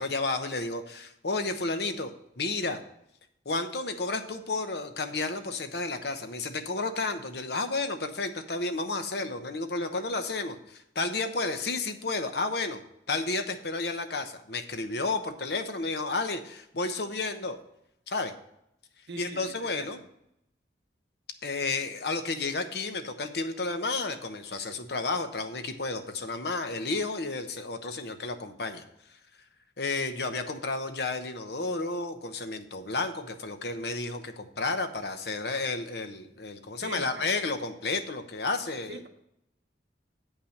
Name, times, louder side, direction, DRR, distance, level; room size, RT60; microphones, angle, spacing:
voice 1, 0.0-2.8 3.4-12.8 13.1-17.6 18.1-18.3 19.2-20.0 21.4-28.8 29.8-39.0, left 3 dB, 60° left, 8 dB, 0.9 m, -32 dB
voice 2, 19.1-20.0 36.8-37.3 38.9-39.1, right 2 dB, 70° right, 5 dB, 0.9 m, -41 dB
8.8 x 5.7 x 6.5 m, 0.78 s
head